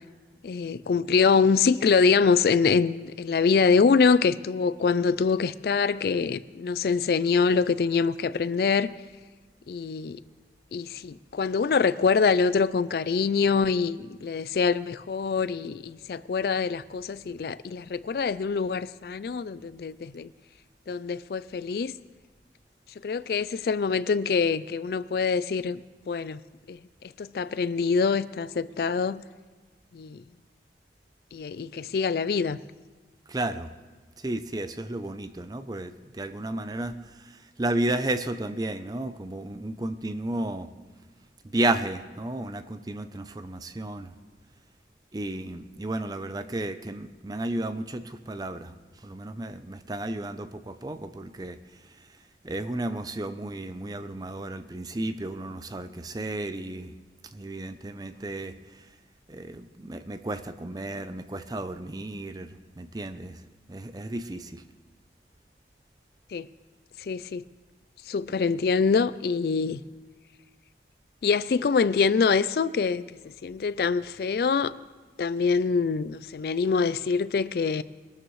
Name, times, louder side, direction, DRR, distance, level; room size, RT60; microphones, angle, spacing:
voice 1, 0.4-8.9 9.7-10.2 10.7-20.3 20.9-21.9 23.0-25.8 26.1-26.4 26.7-26.8 27.2-29.2 29.9-30.2 31.3-32.6 66.3-66.5 67.0-67.4 68.1-69.8 71.2-73.0 73.4-74.7 75.2-77.8, left 5 dB, 60° left, 0.3 m, -24 dB
voice 2, 33.3-33.7 34.2-40.7 41.5-44.1 45.1-48.8 49.0-51.6 52.4-56.9 57.3-58.5 59.3-63.4 63.7-64.6, right 1 dB, 20° right, 0.5 m, -33 dB
21.5 x 12.5 x 3.2 m
head